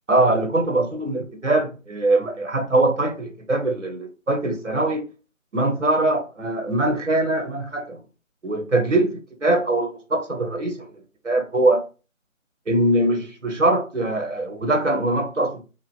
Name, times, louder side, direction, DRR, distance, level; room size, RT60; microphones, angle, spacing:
voice 1, 0.1-5.0 5.5-8.0 8.4-10.9 11.2-11.8 12.7-15.6, right 2 dB, 60° right, 1.0 m, -22 dB
3.1 x 2.3 x 3.0 m
figure-of-eight pair, 170°, 41 cm